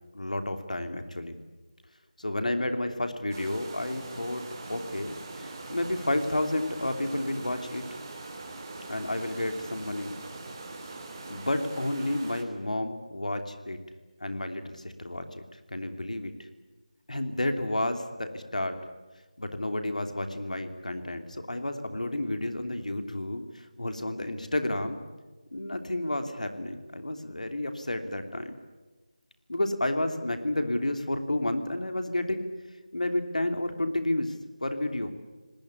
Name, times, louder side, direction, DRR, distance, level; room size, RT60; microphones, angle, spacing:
voice 1, 0.1-1.4 2.2-4.4 4.7-7.8 8.9-10.2 11.3-13.8 14.2-16.3 17.1-18.8 19.4-25.0 25.5-28.5 29.5-32.4 32.9-35.1, left 1 dB, 70° left, 7 dB, 3.1 m, -31 dB
sound 1, 3.3-12.4, right 2 dB, 25° right, 3.3 m, -42 dB
27.0 x 19.5 x 8.4 m, 1.2 s
figure-of-eight pair, 165°, 4 cm